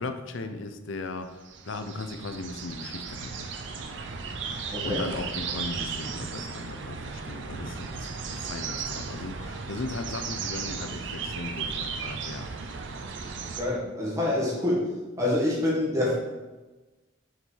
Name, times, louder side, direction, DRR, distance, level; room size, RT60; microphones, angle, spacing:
voice 1, 0.0-3.5 4.8-12.5, left 3 dB, 80° left, 8 dB, 0.6 m, -37 dB
sound 1, 1.4-13.6, right 5 dB, 70° right, 0.6 m, -35 dB
voice 2, 4.7-5.0 13.6-14.9 15.2-16.2, left 1 dB, 15° right, -6 dB, 1.8 m, -26 dB
6.5 x 4.4 x 4.6 m, 1.2 s
head